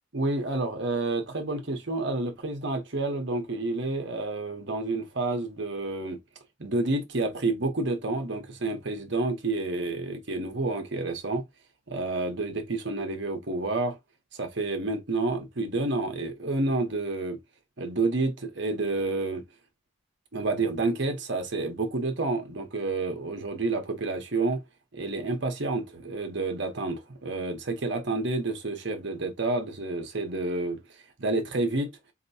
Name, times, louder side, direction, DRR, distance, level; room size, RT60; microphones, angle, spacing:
voice 1, 0.1-6.2 6.6-11.4 11.9-14.0 14.3-17.4 17.8-19.4 20.3-24.6 24.9-30.8 31.2-31.9, right 2 dB, 55° right, 1.0 m, -29 dB
4.3 x 3.0 x 2.8 m
head